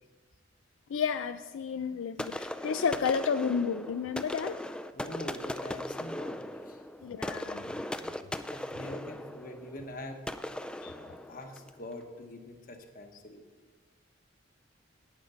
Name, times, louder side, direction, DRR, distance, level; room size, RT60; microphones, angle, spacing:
voice 1, 0.9-4.6 7.0-7.7 10.8-10.9, left 6 dB, 80° left, 10 dB, 0.4 m, -31 dB
sound 1, 2.2-11.8, left 1 dB, 5° left, 0.3 m, -39 dB
voice 2, 4.9-6.8 7.9-10.2 10.9-13.4, left 1 dB, 45° left, 5 dB, 1.2 m, -44 dB
10.5 x 8.6 x 5.6 m, 1.4 s
head